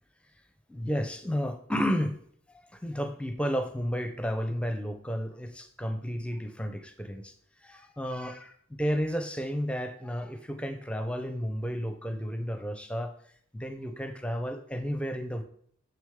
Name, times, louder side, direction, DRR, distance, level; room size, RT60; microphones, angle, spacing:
voice 1, 0.7-2.2 2.7-7.3 7.6-13.1 13.5-15.4, equal, 5° left, 8 dB, 0.5 m, -32 dB
7.1 x 6.5 x 3.6 m, 0.62 s
head